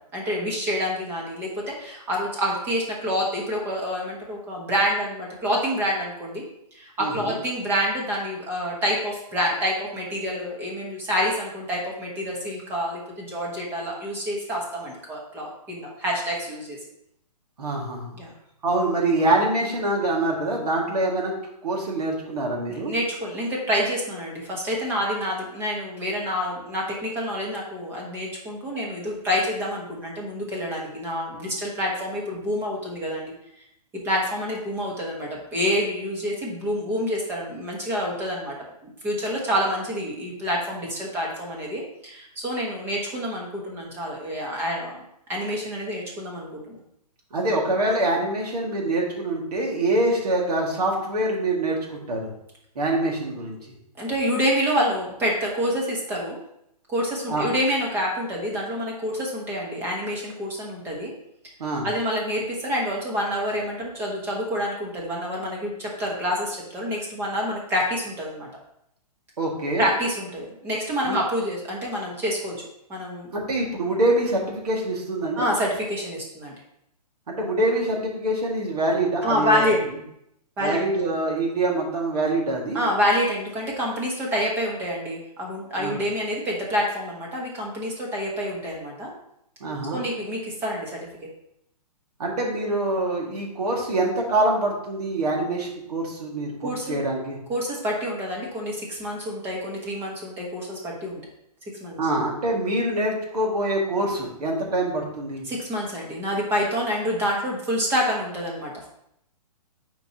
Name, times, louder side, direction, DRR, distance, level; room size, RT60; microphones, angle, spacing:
voice 1, 0.1-1.5 1.8-6.4 6.8-16.8 18.1-18.3 22.7-33.3 34.0-38.6 38.8-45.0 45.3-46.8 54.0-56.4 56.9-61.1 61.8-68.5 69.8-72.5 72.9-73.3 75.4-76.5 79.2-79.8 80.6-80.8 82.7-89.1 89.9-91.0 96.6-97.0 97.5-101.2 101.8-102.0 105.5-108.9, equal, 10° right, -2 dB, 1.2 m, -27 dB
voice 2, 7.0-7.4 17.6-18.2 18.6-21.3 21.6-22.9 47.3-52.3 52.8-53.6 57.3-57.5 61.6-61.9 69.4-69.9 71.1-71.2 73.3-75.5 77.3-79.8 80.6-82.8 85.8-86.0 89.6-90.0 92.2-97.4 102.0-105.4, right 1 dB, 70° right, -1 dB, 2.2 m, -25 dB
8.9 x 4.5 x 2.9 m, 0.78 s
hypercardioid pair, 165°, 20 cm